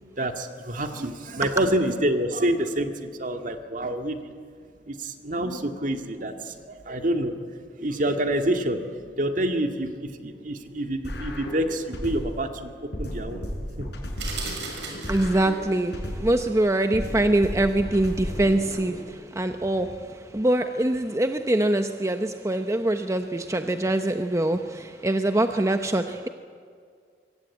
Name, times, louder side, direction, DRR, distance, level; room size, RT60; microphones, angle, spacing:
voice 1, 0.0-4.3 4.9-7.4 7.8-8.9 9.2-13.4 13.8-13.9, right 1 dB, 50° right, 6 dB, 2.0 m, -27 dB
sound 1, 11.0-12.5 12.9-16.5 16.9-19.0, equal, 70° left, 6.1 m, -34 dB
sound 2, 14.2-15.6, right 5 dB, 85° right, 6.7 m, -36 dB
voice 2, 15.1-15.9 16.2-18.9 19.4-19.9 20.3-24.6 25.0-26.3, right 1 dB, 15° right, 7 dB, 0.8 m, -23 dB
25.5 x 23.5 x 8.5 m, 2.1 s
head